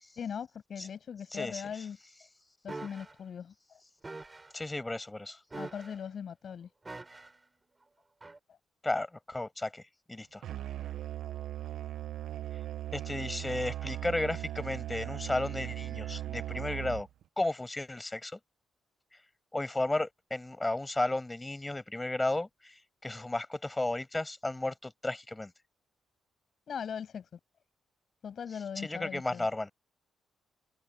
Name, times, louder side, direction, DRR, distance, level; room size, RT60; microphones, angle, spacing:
voice 1, 0.2-2.0 2.6-3.8 5.5-6.7 26.7-27.3 28.2-29.5, left 7 dB, 55° left, 7.8 m, -40 dB
voice 2, 1.3-1.6 4.5-5.4 8.8-9.8 10.1-10.4 12.9-17.1 17.4-18.4 19.5-25.5 28.8-29.7, left 2 dB, 15° left, 7.9 m, -33 dB
sound 1, 2.7-3.1 4.0-4.5 5.5-6.1 6.8-7.4 8.2-8.4, right 2 dB, 20° right, 7.5 m, -44 dB
Musical instrument, 10.4-17.2, right 13 dB, 70° right, 1.0 m, -38 dB
open air
cardioid pair, 90°, 0 cm